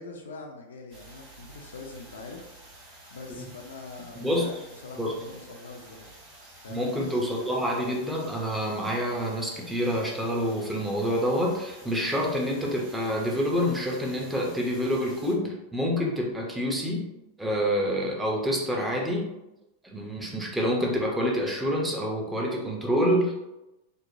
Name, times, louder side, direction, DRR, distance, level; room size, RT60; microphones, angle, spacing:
voice 1, 0.0-2.7 3.1-6.1 6.6-6.9, left 3 dB, 65° left, 2 dB, 0.4 m, -43 dB
sound 1, 0.9-15.3, right 1 dB, 40° right, 1.1 m, -50 dB
voice 2, 4.1-4.5 5.0-5.1 6.7-17.1 17.4-19.3 19.8-23.3, equal, 5° right, -2 dB, 0.5 m, -27 dB
3.0 x 2.1 x 2.5 m, 0.96 s
figure-of-eight pair, 90°, 0 cm